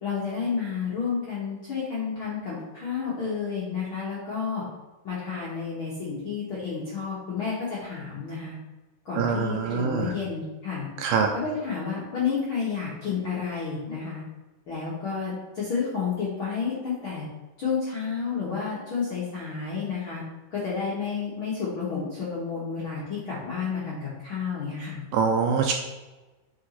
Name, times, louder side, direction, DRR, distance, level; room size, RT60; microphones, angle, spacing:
voice 1, 0.0-4.6 5.0-8.5 9.0-10.9 11.3-14.2 14.7-17.2 17.6-20.2 20.5-25.0, left 5 dB, 55° left, -7 dB, 1.5 m, -31 dB
voice 2, 9.2-10.1 11.0-11.3 25.1-25.7, right 6 dB, 80° right, 3 dB, 2.2 m, -24 dB
7.3 x 4.9 x 4.3 m, 1.1 s
omnidirectional pair, 4.4 m